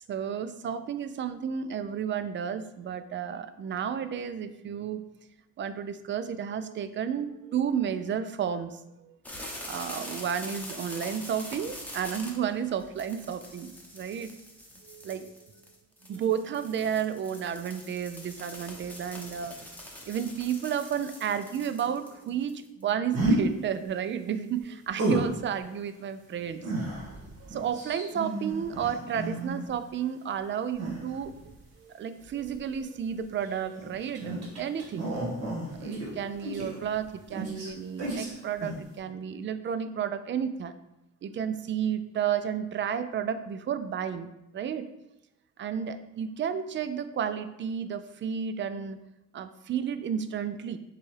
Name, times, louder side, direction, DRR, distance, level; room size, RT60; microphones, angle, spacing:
voice 1, 0.1-5.0 5.6-9.2 9.7-14.3 14.9-15.3 16.0-19.6 20.1-26.6 27.4-31.4 31.8-35.1 35.7-40.7 41.2-44.8 45.6-49.0 49.3-50.8, right 8 dB, 40° right, 11 dB, 0.4 m, -32 dB
sound 1, 9.2-22.9, left 1 dB, 5° left, 0.8 m, -44 dB
sound 2, 23.1-23.4 25.0-25.3 26.6-29.7 30.8-31.6 32.4-32.6 33.4-37.1 37.3-37.7 38.0-38.3 38.6-38.8, right 2 dB, 60° right, 1.6 m, -32 dB
6.6 x 2.4 x 3.3 m, 0.90 s
cardioid pair, 90°, 30 cm